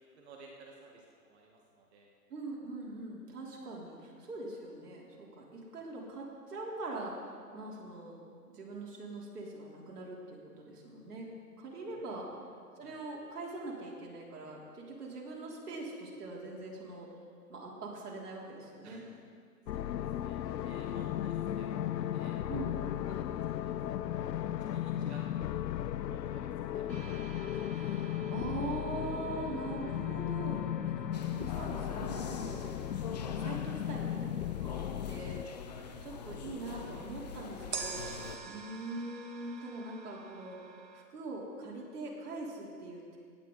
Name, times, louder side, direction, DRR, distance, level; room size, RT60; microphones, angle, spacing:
voice 1, 0.1-2.1 11.9-12.1 12.8-13.0 18.8-19.2 19.7-20.4 20.6-22.3 23.1-24.0 24.3-27.8 33.5-33.6 35.8-36.0 38.5-38.6, right 3 dB, 40° right, 0 dB, 1.5 m, -56 dB
voice 2, 2.3-7.2 7.5-8.2 8.5-11.3 11.6-12.3 12.8-17.1 17.5-19.0 22.5-22.8 27.7-33.1 33.4-35.4 36.0-40.6 40.9-43.2, right 2 dB, 70° right, -3 dB, 3.5 m, -42 dB
sound 1, 19.7-35.4, left 11 dB, 85° left, 0.6 m, -36 dB
sound 2, 26.9-34.8 37.7-41.0, right 5 dB, 90° right, 1.4 m, -48 dB
sound 3, 31.1-38.4, left 6 dB, 25° left, 0.5 m, -44 dB
17.5 x 9.5 x 3.9 m, 2.1 s
hypercardioid pair, 145°, 49 cm